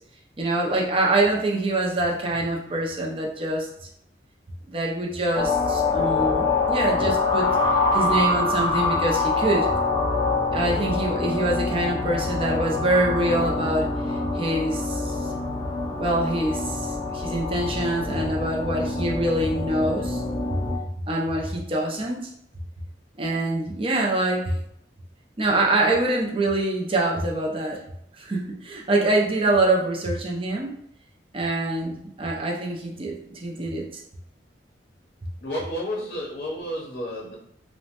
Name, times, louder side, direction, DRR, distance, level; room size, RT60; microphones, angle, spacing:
voice 1, 0.4-3.7 4.7-7.5 7.9-9.7 10.5-15.3 16.0-20.2 21.1-22.3 23.2-24.6 25.4-27.8 28.2-30.7 31.3-34.0, right 2 dB, 30° right, -1 dB, 0.5 m, -25 dB
sound 1, 5.4-20.8, left 3 dB, 25° left, 0.3 m, -25 dB
voice 2, 35.4-37.4, equal, 55° left, -4 dB, 0.6 m, -31 dB
3.0 x 2.1 x 2.8 m, 0.72 s
head